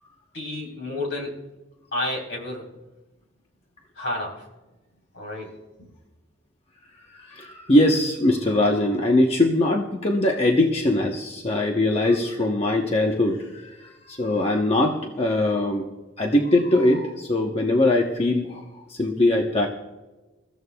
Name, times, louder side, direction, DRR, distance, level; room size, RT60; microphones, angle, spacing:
voice 1, 0.3-1.4 1.9-2.7 4.0-4.5 5.1-5.5 5.8-5.9, left 1 dB, 65° left, -1 dB, 4.0 m, -31 dB
voice 2, 7.1-15.9 16.2-18.6 18.9-19.7, left 1 dB, 35° left, 1 dB, 1.0 m, -21 dB
28.0 x 14.5 x 2.3 m, 1.1 s
head